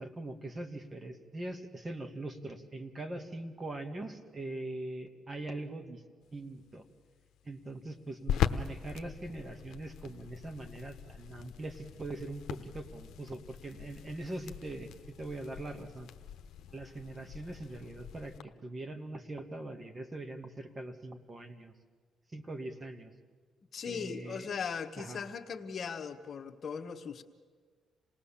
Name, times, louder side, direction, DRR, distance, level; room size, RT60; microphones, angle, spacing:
voice 1, 0.0-6.0 6.3-6.8 7.4-14.9 15.2-16.1 16.7-21.7 22.3-23.1 23.8-24.5 25.0-25.3, right 2 dB, 30° right, 7 dB, 2.0 m, -42 dB
sound 1, 6.2-18.4, left 10 dB, 75° left, 0.9 m, -40 dB
voice 2, 23.7-27.2, left 6 dB, 50° left, 7 dB, 1.2 m, -39 dB
27.5 x 18.5 x 7.4 m, 1.5 s
cardioid pair, 90°, 0 cm